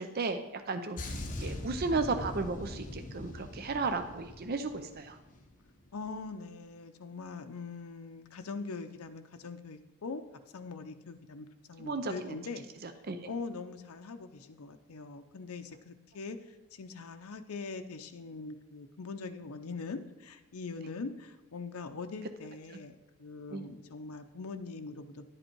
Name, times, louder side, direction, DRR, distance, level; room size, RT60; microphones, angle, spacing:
voice 1, 0.0-5.2 11.8-12.4 13.1-13.2 23.5-23.6, right 3 dB, 45° right, 8 dB, 0.5 m, -34 dB
sound 1, 1.0-5.5 5.8-6.1, left 1 dB, 35° left, 1.1 m, -41 dB
voice 2, 5.9-10.2 10.5-12.7 13.3-25.2, left 4 dB, 70° left, 7 dB, 0.6 m, -42 dB
11.0 x 7.9 x 4.5 m, 1.1 s
head